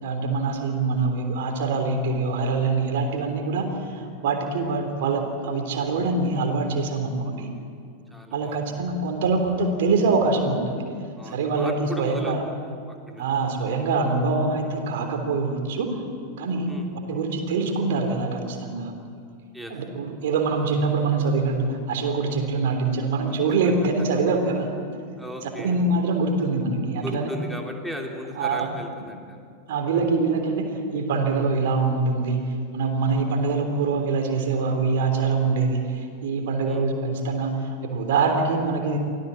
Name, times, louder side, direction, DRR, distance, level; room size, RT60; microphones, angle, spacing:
voice 1, 0.0-7.5 8.3-10.7 11.3-12.4 13.2-15.9 16.4-16.7 17.1-18.9 19.7-24.7 25.6-27.3 28.4-28.7 29.7-39.0, right 3 dB, 55° right, 4 dB, 3.4 m, -24 dB
voice 2, 8.1-8.8 11.2-13.3 16.7-16.9 19.5-19.8 23.5-23.7 25.2-25.8 27.0-29.4 36.6-36.9, equal, ahead, 1 dB, 3.0 m, -37 dB
24.0 x 16.5 x 7.7 m, 2.3 s
figure-of-eight pair, 90°, 0 cm